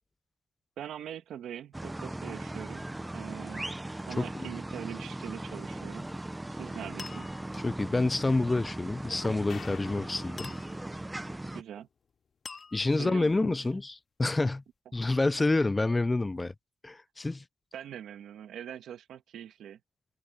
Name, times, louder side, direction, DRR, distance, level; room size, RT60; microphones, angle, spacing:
voice 1, 0.8-2.9 3.1-6.1 6.5-7.3 11.5-11.9 13.0-13.6 17.7-19.8, right 10 dB, 90° right, 1.8 m, -42 dB
sound 1, 1.7-11.6, right 1 dB, 10° right, 0.8 m, -39 dB
voice 2, 4.2-4.5 7.5-10.5 12.7-14.6 14.9-16.5 16.8-17.4, left 2 dB, 20° left, 0.4 m, -28 dB
sound 2, 5.9-6.4 7.0-7.7 10.4-11.1 12.5-13.3, left 4 dB, 40° left, 3.0 m, -47 dB
sound 3, 9.5-11.8, left 7 dB, 60° left, 5.1 m, -49 dB
cardioid pair, 95°, 0 cm